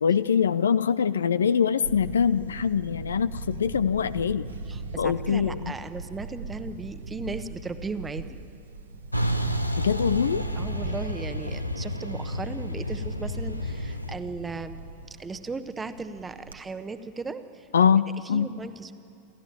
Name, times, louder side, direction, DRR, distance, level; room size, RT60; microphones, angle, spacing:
voice 1, 0.0-4.5 5.0-5.7 9.8-10.4 17.7-18.5, left 7 dB, 70° left, 16 dB, 0.5 m, -23 dB
Camera, 1.8-16.6, right 3 dB, 70° right, 1.2 m, -40 dB
voice 2, 4.7-8.4 10.6-14.9 15.2-17.7 18.2-18.9, right 3 dB, 15° right, 10 dB, 1.1 m, -36 dB
Truck, 9.1-14.1, equal, 90° left, 1.0 m, -30 dB
28.5 x 14.0 x 8.9 m, 2.6 s
figure-of-eight pair, 90°, 0 cm